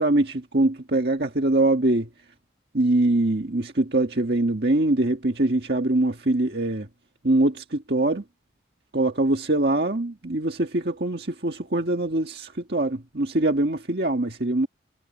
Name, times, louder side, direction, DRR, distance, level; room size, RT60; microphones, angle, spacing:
voice 1, 0.0-2.1 2.7-6.9 7.2-8.2 8.9-14.7, right 2 dB, 60° right, 1.7 m, -23 dB
head